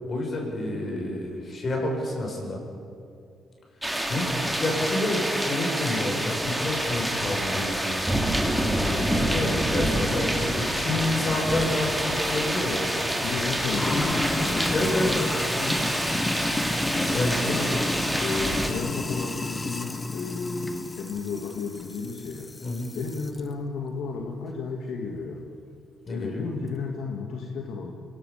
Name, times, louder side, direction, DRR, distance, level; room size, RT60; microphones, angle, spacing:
voice 1, 0.1-2.6 4.1-8.0 8.8-12.8 14.7-15.2 15.5-15.8 17.1-17.6 18.7-18.9 22.6-22.9 26.1-26.4, left 1 dB, 45° left, 0 dB, 7.4 m, -29 dB
sound 1, 3.8-18.7, right 1 dB, 5° right, 3.0 m, -27 dB
Sink (filling or washing), 11.1-23.4, left 2 dB, 20° left, 1.3 m, -32 dB
voice 2, 13.2-14.8 16.9-17.8 18.2-22.5 22.9-25.4 26.1-27.9, left 4 dB, 75° left, 1 dB, 2.2 m, -33 dB
26.5 x 18.0 x 7.4 m, 2.5 s
cardioid pair, 90°, 0 cm